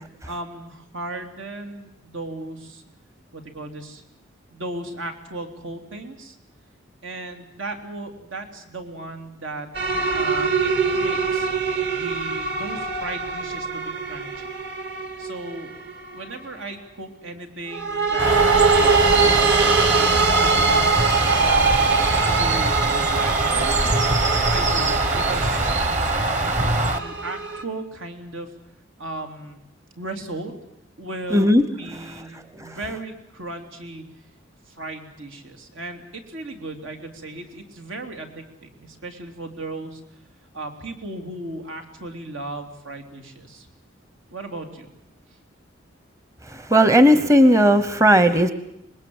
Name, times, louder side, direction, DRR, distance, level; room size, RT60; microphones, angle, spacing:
voice 1, 0.3-2.8 3.3-4.0 4.5-6.4 7.0-9.7 10.1-11.5 11.9-14.5 15.2-15.7 16.1-18.9 19.2-20.8 21.4-23.9 24.5-25.8 26.6-28.5 29.0-29.6 30.0-30.5 31.0-34.0 34.7-40.0 40.5-43.7 44.3-44.9, right 2 dB, 85° right, 4 dB, 3.1 m, -36 dB
sound 1, 9.7-16.2 17.7-27.6, right 4 dB, 55° right, 2.0 m, -23 dB
Bird, 18.2-27.0, right 2 dB, 40° right, 1.5 m, -23 dB
voice 2, 31.3-31.6 31.9-32.1 32.5-32.8 46.5-48.5, equal, 15° right, 12 dB, 0.8 m, -16 dB
25.5 x 20.5 x 7.9 m, 0.78 s
head